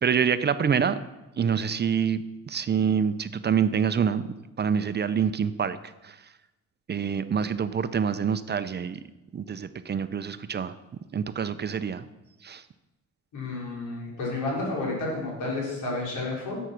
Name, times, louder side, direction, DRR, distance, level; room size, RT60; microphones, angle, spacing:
voice 1, 0.0-1.0 1.4-4.2 4.6-5.8 6.0-6.2 6.9-9.0 9.3-10.8 11.1-12.1 12.4-12.6, right 7 dB, 35° right, 13 dB, 0.6 m, -26 dB
voice 2, 13.3-16.6, left 2 dB, 85° left, -3 dB, 4.5 m, -31 dB
11.0 x 8.0 x 6.0 m, 1.0 s
cardioid pair, 90°, 30 cm